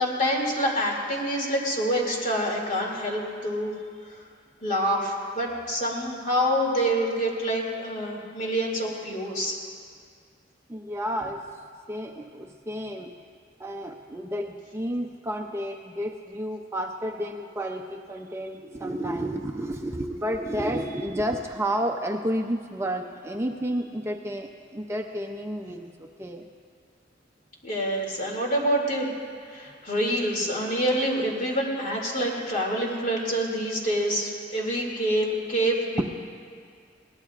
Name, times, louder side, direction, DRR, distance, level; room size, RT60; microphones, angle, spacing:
voice 1, 0.0-3.7 4.6-9.6 27.6-29.1 29.5-36.0, equal, 45° left, -1 dB, 2.5 m, -26 dB
voice 2, 10.7-11.6 11.9-13.1 13.6-26.5 36.0-36.1, equal, 15° right, 3 dB, 0.5 m, -31 dB
22.0 x 18.0 x 2.4 m, 2.1 s
head